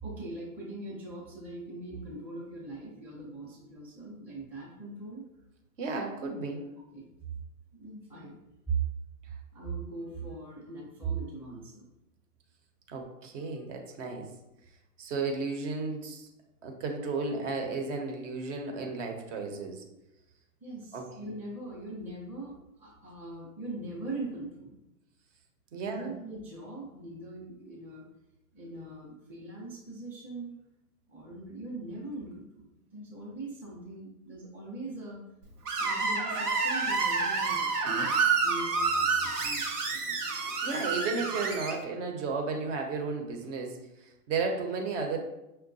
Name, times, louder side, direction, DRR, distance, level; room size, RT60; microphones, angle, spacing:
voice 1, 0.0-5.3 6.9-7.1 7.7-8.4 8.7-8.8 9.5-11.9 20.6-24.8 25.7-28.1 28.5-30.6 31.1-35.2 35.8-37.8 38.4-40.2, right 3 dB, 5° right, -6 dB, 0.5 m, -40 dB
voice 2, 5.8-6.7 12.9-14.3 15.0-16.3 16.6-19.8 20.9-21.1 25.7-26.1 40.3-45.2, right 4 dB, 55° right, 3 dB, 0.8 m, -34 dB
Screech, 35.7-41.7, right 4 dB, 85° right, 0.9 m, -29 dB
5.5 x 2.2 x 2.6 m, 0.94 s
hypercardioid pair, 120°, 45 cm